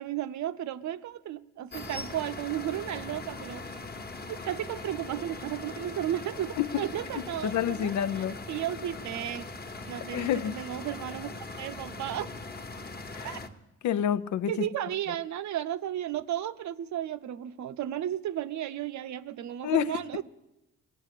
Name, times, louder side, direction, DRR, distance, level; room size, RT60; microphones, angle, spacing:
voice 1, 0.0-3.6 4.3-9.5 9.9-12.3 13.2-13.4 14.5-20.2, right 11 dB, 70° right, 0.7 m, -34 dB
sound 1, 1.7-13.5, left 3 dB, 30° left, 1.3 m, -41 dB
voice 2, 7.4-8.4 10.1-10.5 13.1-13.4 13.8-14.7 19.6-19.9, left 10 dB, 70° left, 0.7 m, -28 dB
20.0 x 8.3 x 8.3 m
cardioid pair, 90°, 30 cm